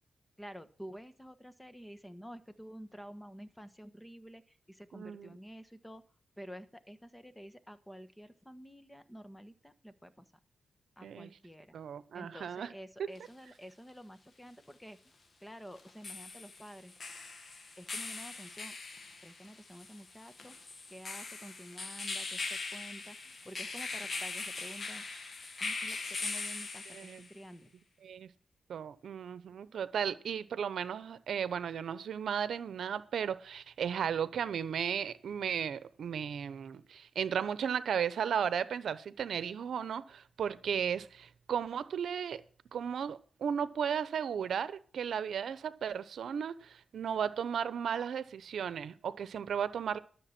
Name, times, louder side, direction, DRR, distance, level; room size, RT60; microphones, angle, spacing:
voice 1, 0.4-6.0 6.4-10.3 11.0-11.8 12.1-15.0 15.4-16.9 17.8-18.7 19.2-20.6 20.9-25.1 25.6-27.7, equal, 10° left, 1.4 m, -50 dB
voice 2, 4.9-5.4 11.0-11.3 11.7-12.7 13.0-13.1 26.9-27.3 28.0-28.3 28.7-42.4 42.7-50.0, right 8 dB, 80° right, 0.8 m, -35 dB
sound 1, 13.2-13.3 15.8-27.4, left 3 dB, 50° left, 1.8 m, -41 dB
13.0 x 6.9 x 6.0 m
cardioid pair, 75°, 0 cm